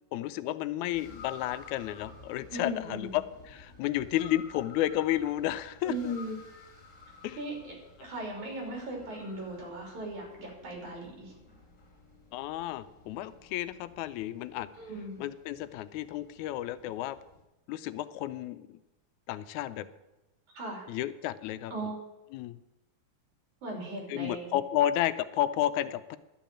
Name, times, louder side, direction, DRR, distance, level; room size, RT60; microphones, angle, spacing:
voice 1, 0.1-6.0 7.2-7.4 12.3-14.7 15.2-17.2 17.7-18.8 19.3-19.9 20.9-21.7 22.3-22.6 24.1-26.2, left 13 dB, 90° left, 14 dB, 2.0 m, -32 dB
sound 1, 0.9-17.4, left 4 dB, 25° left, 2.5 m, -53 dB
voice 2, 2.5-3.1 5.8-6.4 7.4-7.7 8.0-11.3 14.7-15.2 20.5-20.9 21.7-22.0 23.6-24.6, right 1 dB, 85° right, 0 dB, 4.5 m, -37 dB
12.0 x 5.8 x 8.6 m, 1.0 s
omnidirectional pair, 3.3 m